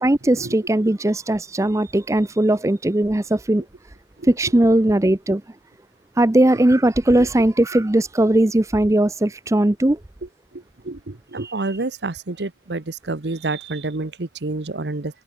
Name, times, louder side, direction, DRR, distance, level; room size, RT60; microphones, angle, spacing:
voice 1, 0.0-3.6 4.3-5.4 6.2-10.0 11.4-11.5, right 1 dB, 15° right, 0.6 m, -18 dB
voice 2, 10.5-15.2, right 3 dB, 75° right, 1.1 m, -29 dB
open air
head